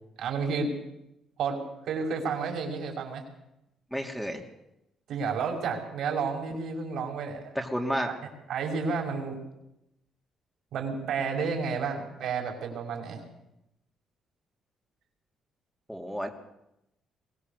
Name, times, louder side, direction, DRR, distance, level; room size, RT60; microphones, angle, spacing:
voice 1, 0.2-0.7 1.4-3.2 5.1-7.6 8.1-9.4 10.7-13.2, right 5 dB, 75° right, 2 dB, 5.7 m, -31 dB
voice 2, 3.9-4.4 7.5-8.1 15.9-16.3, equal, ahead, 2 dB, 2.8 m, -31 dB
22.5 x 18.0 x 6.8 m, 0.86 s
cardioid pair, 90°, 0 cm